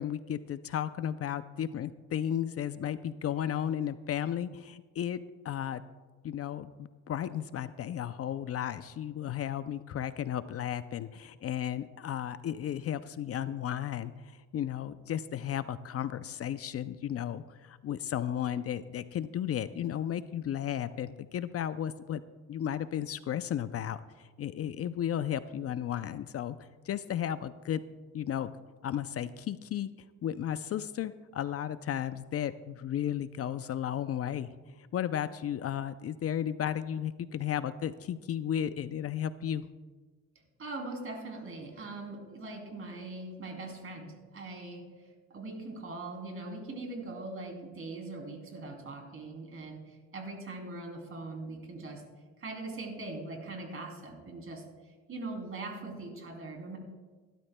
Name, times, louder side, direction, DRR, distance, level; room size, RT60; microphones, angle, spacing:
voice 1, 0.0-5.2 5.4-5.8 6.2-6.7 7.1-22.2 22.5-26.6 26.9-27.8 28.1-28.5 28.8-29.9 30.2-39.7, left 10 dB, 50° left, 13 dB, 0.5 m, -34 dB
voice 2, 40.6-44.9 45.3-52.0 52.4-54.6 55.1-56.8, right 2 dB, 45° right, 2 dB, 3.0 m, -41 dB
17.0 x 12.0 x 2.2 m, 1.3 s
cardioid pair, 90°, 30 cm